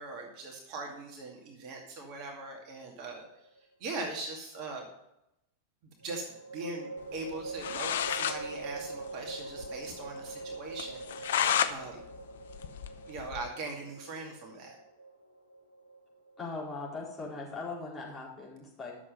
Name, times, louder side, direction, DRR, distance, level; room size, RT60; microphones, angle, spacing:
voice 1, 0.0-3.2 3.8-4.9 5.8-6.3 6.5-12.0 13.1-14.8, right 3 dB, 40° right, 1 dB, 2.2 m, -41 dB
sound 1, 2.9-3.7 6.0-17.3, right 3 dB, 75° right, 2.2 m, -44 dB
sound 2, 7.3-7.4 7.6-8.4 8.7-8.8 9.1-9.2 9.6-9.7 10.1-10.2 10.8-11.7 12.1-13.5, left 9 dB, 60° left, 0.6 m, -30 dB
voice 2, 16.4-18.9, left 3 dB, 20° left, -5 dB, 4.5 m, -39 dB
11.0 x 7.1 x 5.5 m, 0.85 s
figure-of-eight pair, 90°, 0 cm